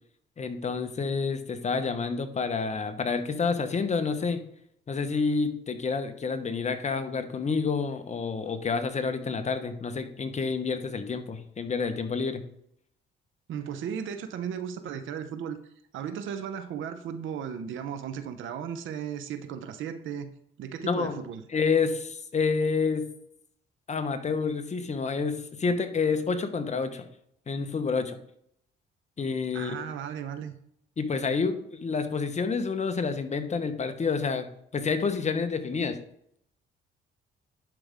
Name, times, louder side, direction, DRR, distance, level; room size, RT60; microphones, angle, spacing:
voice 1, 0.4-4.4 4.9-12.4 20.8-21.2 21.5-23.1 23.9-27.1 27.5-28.2 29.2-29.8 31.0-34.5 34.7-36.0, left 5 dB, 35° left, 1.0 m, -28 dB
voice 2, 13.5-15.6 15.9-20.3 20.6-21.4 29.5-30.6, right 8 dB, 80° right, 0.8 m, -35 dB
11.0 x 5.1 x 3.5 m
cardioid pair, 90°, 20 cm